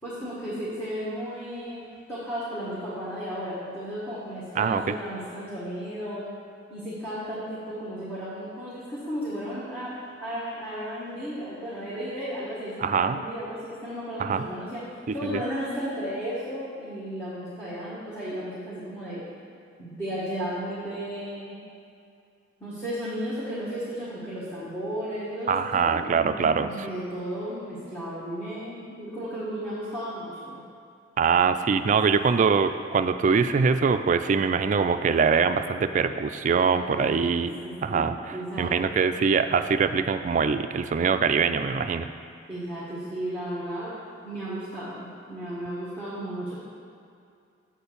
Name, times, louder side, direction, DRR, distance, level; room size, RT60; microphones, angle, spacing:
voice 1, 0.0-1.8 2.1-6.3 6.7-9.9 10.2-14.8 15.1-19.2 19.8-21.6 22.6-30.6 31.9-32.2 36.9-37.3 37.6-39.0 42.5-44.0 44.2-46.5, equal, 10° left, -12 dB, 1.5 m, -34 dB
voice 2, 12.8-13.2 14.2-14.5 15.1-15.4 25.5-26.7 31.2-42.1, right 5 dB, 40° right, 10 dB, 0.3 m, -23 dB
7.6 x 4.4 x 6.8 m, 2.4 s
head